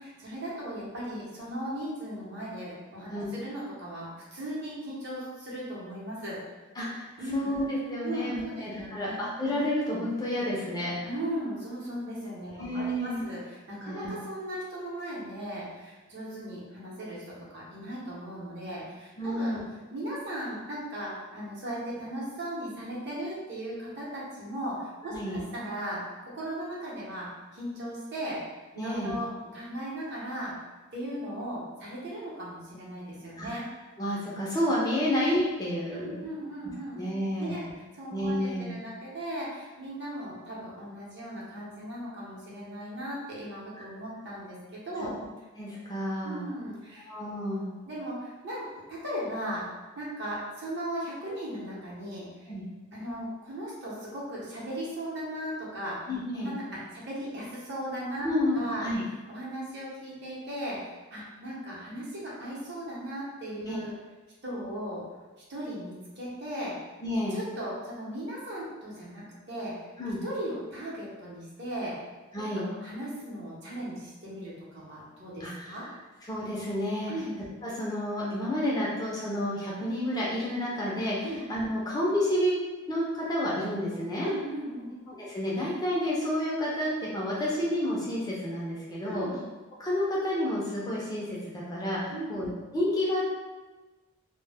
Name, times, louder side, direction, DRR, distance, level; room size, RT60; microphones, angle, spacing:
voice 1, 0.0-6.4 7.2-7.6 8.0-9.3 11.0-19.6 19.9-28.4 28.7-30.5 30.9-33.7 35.9-37.0 37.4-37.6 37.9-45.1 46.2-47.1 47.9-49.7 50.0-52.5 52.9-56.1 56.4-58.3 58.5-58.9 59.3-63.9 64.4-65.0 65.5-66.8 67.3-69.7 70.2-72.0 72.5-75.8 77.1-77.3 81.2-81.4 84.2-84.9 89.0-89.5 92.1-92.4, right 1 dB, 55° right, -6 dB, 0.7 m, -37 dB
voice 2, 6.8-11.0 12.5-13.2 13.8-14.1 19.2-19.6 25.1-25.4 28.8-29.1 33.4-33.5 34.0-36.2 36.9-37.7 38.1-38.7 45.6-46.4 47.1-47.7 52.5-52.6 56.1-56.5 58.2-59.0 63.7-63.8 67.0-67.4 70.0-70.2 72.3-72.6 75.4-75.7 76.3-77.1 77.6-82.6 82.9-84.3 85.1-89.3 89.8-93.3, left 1 dB, 20° left, -6 dB, 0.4 m, -30 dB
2.1 x 2.0 x 3.3 m, 1.2 s
head